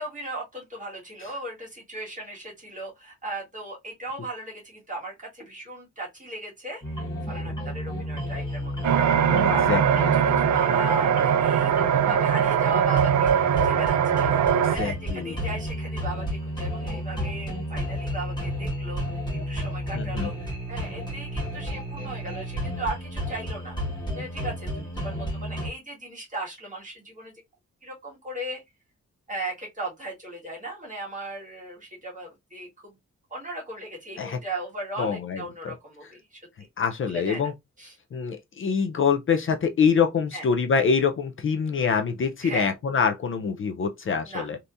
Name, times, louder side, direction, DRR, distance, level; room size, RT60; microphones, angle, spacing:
voice 1, 0.0-9.0 9.4-19.2 19.5-23.8 24.1-27.3 27.8-28.6 29.3-32.9 33.3-36.4 37.0-37.5 37.8-37.9 40.3-40.4 42.4-42.7 44.3-44.6, right 2 dB, 25° right, 1.6 m, -36 dB
sound 1, 6.8-25.7, equal, 15° left, 1.5 m, -32 dB
sound 2, 8.8-14.8, right 9 dB, 75° right, 0.5 m, -21 dB
voice 2, 9.0-10.0 14.6-15.4 19.9-20.3 34.2-34.4 35.0-35.7 36.8-37.5 38.1-44.6, left 6 dB, 45° left, 0.5 m, -25 dB
3.4 x 2.8 x 2.6 m
wide cardioid pair, 170°, 29 cm